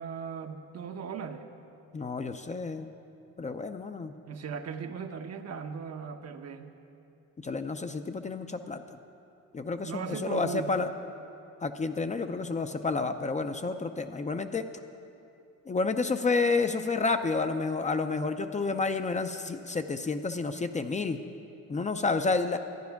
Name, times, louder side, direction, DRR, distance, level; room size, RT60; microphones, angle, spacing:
voice 1, 0.0-1.5 4.3-6.7 9.8-10.9, right 6 dB, 55° right, 6 dB, 0.8 m, -38 dB
voice 2, 1.9-2.9 3.4-4.1 7.4-9.0 9.5-9.9 10.2-10.9 11.6-14.6 15.7-21.2 21.7-22.6, left 4 dB, 25° left, 8 dB, 0.5 m, -30 dB
12.0 x 9.5 x 5.8 m, 2.7 s
cardioid pair, 90°, 30 cm